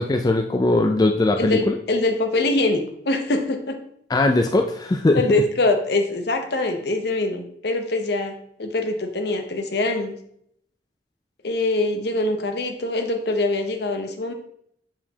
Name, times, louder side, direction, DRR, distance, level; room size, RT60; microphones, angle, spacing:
voice 1, 0.0-1.8 4.1-5.2, left 2 dB, 20° left, 4 dB, 0.3 m, -20 dB
voice 2, 1.4-3.8 5.2-10.2 11.4-14.3, left 2 dB, 60° left, 6 dB, 0.8 m, -23 dB
7.4 x 4.8 x 2.8 m, 0.69 s
head